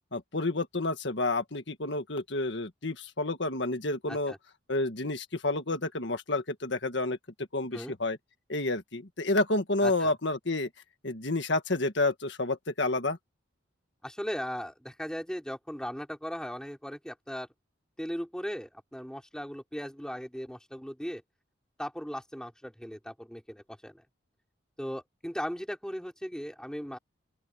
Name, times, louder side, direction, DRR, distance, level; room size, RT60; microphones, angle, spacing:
voice 1, 0.1-4.3 4.7-7.2 7.5-8.2 8.5-10.7 11.0-13.2, left 2 dB, 65° left, 1.7 m, -29 dB
voice 2, 9.8-10.1 14.0-17.5 18.0-21.2 21.8-24.0 24.8-27.0, equal, 5° left, 4.4 m, -38 dB
open air
head